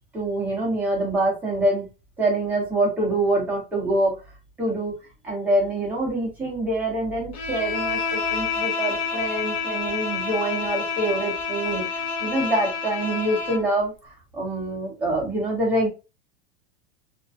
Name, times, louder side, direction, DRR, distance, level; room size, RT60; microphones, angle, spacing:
voice 1, 0.1-1.9 2.2-4.2 4.6-4.9 5.2-11.9 12.2-15.9, right 1 dB, 5° right, -4 dB, 0.6 m, -25 dB
Bowed string instrument, 7.3-13.7, left 5 dB, 35° left, 0.5 m, -28 dB
2.5 x 2.1 x 2.3 m, 0.28 s
supercardioid pair, 170°, 31 cm